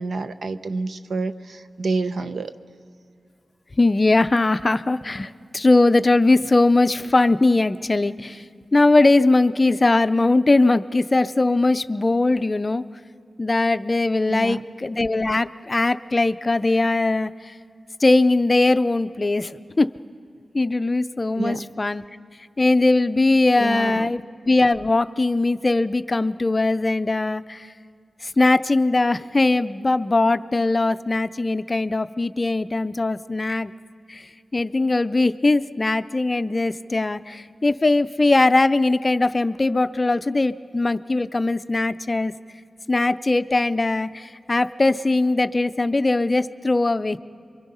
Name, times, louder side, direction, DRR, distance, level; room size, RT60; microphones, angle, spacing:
voice 1, 0.0-2.5 14.3-14.6 21.4-21.7 23.6-24.1, right 3 dB, 75° right, 10 dB, 0.7 m, -28 dB
voice 2, 3.8-8.4 8.7-12.8 13.4-17.5 18.0-19.9 20.5-22.0 22.6-27.7 28.2-33.7 34.1-42.3 42.9-47.2, left 2 dB, 30° left, 12 dB, 0.5 m, -20 dB
27.5 x 23.5 x 5.5 m, 2.3 s
wide cardioid pair, 95°, 0 cm